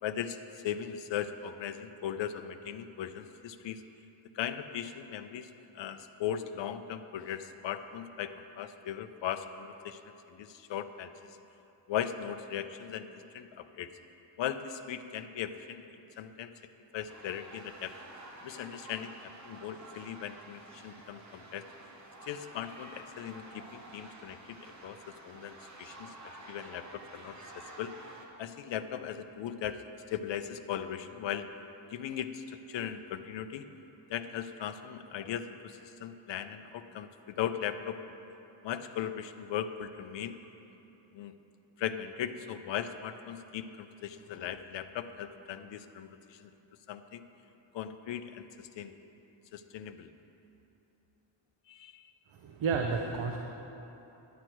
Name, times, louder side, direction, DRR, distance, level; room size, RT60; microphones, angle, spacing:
voice 1, 0.0-3.8 4.3-5.5 5.7-10.0 10.3-11.1 11.9-13.1 13.3-13.9 14.4-15.9 16.2-16.5 16.9-17.9 18.4-21.7 22.2-25.0 25.2-27.4 27.8-27.9 28.4-31.5 31.9-33.7 34.1-38.0 38.6-40.4 41.1-41.4 41.8-46.5 46.9-47.3 47.7-49.0 49.5-50.1 51.7-52.1, left 9 dB, 70° left, 10 dB, 0.6 m, -38 dB
sound 1, 17.1-28.3, right 2 dB, 35° right, 1.0 m, -50 dB
voice 2, 52.3-53.4, right 5 dB, 80° right, 2 dB, 0.8 m, -31 dB
11.5 x 8.2 x 4.5 m, 3.0 s
wide cardioid pair, 165°, 47 cm